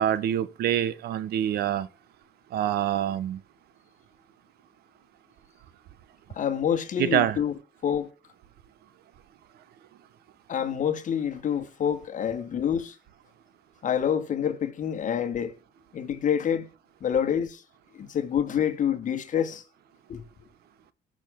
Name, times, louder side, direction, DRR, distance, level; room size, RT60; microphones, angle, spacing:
voice 1, 0.0-1.9 2.5-3.4 7.0-7.4, right 11 dB, 70° right, 1.0 m, -25 dB
voice 2, 6.3-7.5 7.8-8.1 10.5-13.0 13.8-15.6 15.9-16.7 17.0-17.6 17.9-19.6 20.1-20.3, left 8 dB, 50° left, 1.8 m, -27 dB
18.0 x 6.4 x 3.6 m
cardioid pair, 110°, 17 cm